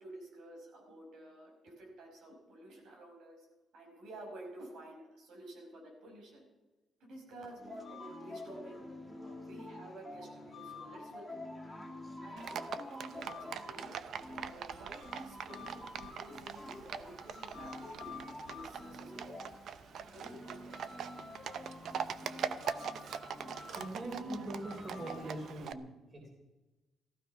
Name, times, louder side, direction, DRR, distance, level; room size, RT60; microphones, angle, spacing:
voice 1, 0.0-3.5 3.7-6.5 7.0-8.7 9.1-11.7 12.2-13.9 14.3-19.4 20.1-20.9, right 1 dB, 80° right, 1 dB, 5.3 m, -51 dB
sound 1, 7.6-25.5, left 2 dB, ahead, 2.7 m, -48 dB
Livestock farm animals working animals, 12.4-25.7, right 7 dB, 60° right, 0.7 m, -43 dB
voice 2, 23.7-26.3, right 1 dB, 30° right, 1 dB, 3.3 m, -42 dB
15.0 x 15.0 x 5.6 m, 1.1 s
cardioid pair, 150°, 0 cm